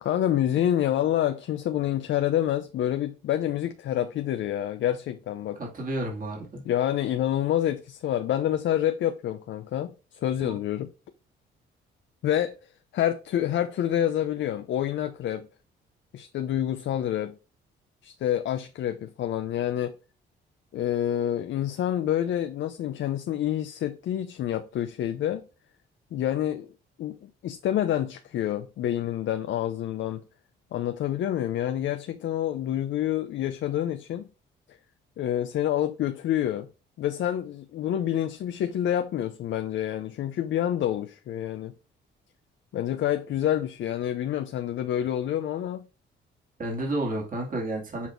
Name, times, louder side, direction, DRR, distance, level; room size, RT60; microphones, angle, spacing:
voice 1, 0.0-5.6 6.6-10.9 12.2-15.5 16.1-17.4 18.0-19.9 20.7-25.5 26.1-26.7 27.0-30.2 30.7-34.3 35.2-36.7 37.0-41.7 42.7-45.9, left 11 dB, 70° left, 0.7 m, -27 dB
voice 2, 5.6-6.6 10.4-10.6 46.6-48.1, right 1 dB, 45° right, 2.5 m, -31 dB
7.3 x 4.1 x 4.5 m
cardioid pair, 90°, 20 cm